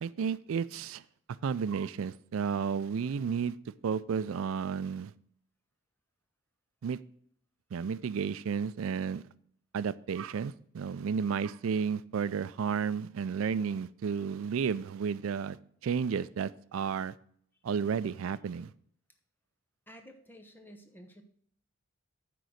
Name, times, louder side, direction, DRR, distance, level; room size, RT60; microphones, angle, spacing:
voice 1, 0.0-1.0 1.4-3.6 3.8-5.1 6.8-7.0 7.7-9.2 9.7-15.6 15.8-17.1 17.6-18.7, right 6 dB, 85° right, 17 dB, 0.4 m, -32 dB
voice 2, 19.9-21.2, equal, 10° left, 5 dB, 0.9 m, -52 dB
9.3 x 3.9 x 6.3 m, 0.62 s
head